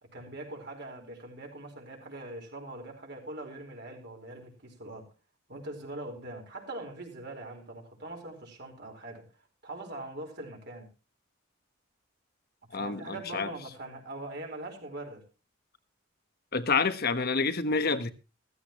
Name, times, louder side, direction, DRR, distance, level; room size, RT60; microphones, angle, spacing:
voice 1, 0.0-5.1 5.5-9.2 9.6-10.9 12.7-15.2, right 2 dB, 55° right, 4.6 m, -42 dB
voice 2, 12.7-13.5 16.5-18.1, left 4 dB, 50° left, 1.2 m, -28 dB
15.5 x 15.0 x 3.1 m
head